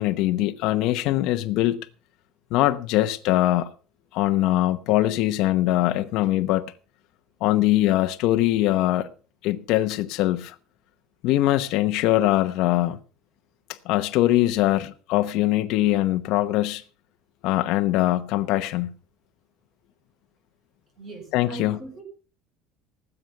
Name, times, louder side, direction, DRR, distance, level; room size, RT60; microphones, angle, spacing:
voice 1, 0.0-1.8 2.5-3.7 4.1-6.7 7.4-9.1 9.4-10.5 11.2-13.0 13.8-16.8 17.4-18.9 21.3-21.8, left 15 dB, 60° left, 0.9 m, -22 dB
voice 2, 21.0-22.0, right 3 dB, 30° right, 5.8 m, -40 dB
19.0 x 7.9 x 5.8 m
cardioid pair, 160°, 0 cm